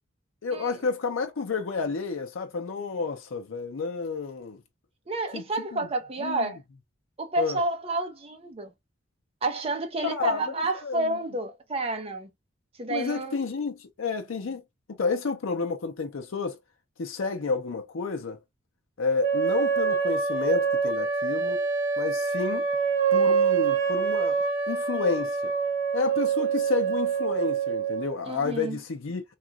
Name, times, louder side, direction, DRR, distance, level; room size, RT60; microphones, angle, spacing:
voice 1, 0.4-4.6 5.3-5.9 6.2-6.5 7.4-7.6 10.0-11.2 12.9-14.6 14.9-16.6 17.0-18.4 19.0-21.6 22.0-22.6 23.1-24.4 24.7-25.5 25.9-29.2, left 4 dB, 80° left, 0.6 m, -30 dB
voice 2, 5.1-6.6 7.2-8.7 9.4-12.3 12.8-13.4 28.3-28.8, right 2 dB, 30° right, 0.6 m, -30 dB
sound 1, 19.2-28.2, right 6 dB, 70° right, 0.8 m, -25 dB
2.9 x 2.4 x 2.3 m
head